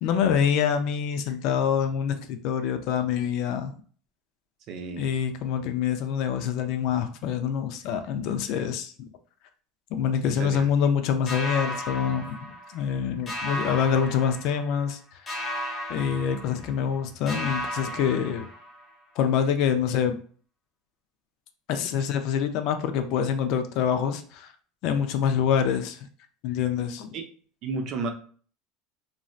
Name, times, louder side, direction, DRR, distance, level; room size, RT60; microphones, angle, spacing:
voice 1, 0.0-3.7 5.0-8.9 9.9-15.0 15.9-18.4 19.2-20.2 21.7-24.5 24.8-26.0 26.4-27.1, left 7 dB, 55° left, 8 dB, 0.4 m, -26 dB
voice 2, 4.7-5.1 10.3-10.7 27.1-27.2 27.6-28.1, right 4 dB, 45° right, 5 dB, 0.5 m, -32 dB
sound 1, 11.3-13.0 13.3-14.9 15.3-17.0 17.3-19.0, equal, 20° left, 0.7 m, -35 dB
3.1 x 2.6 x 2.4 m, 0.43 s
supercardioid pair, 150°, 0 cm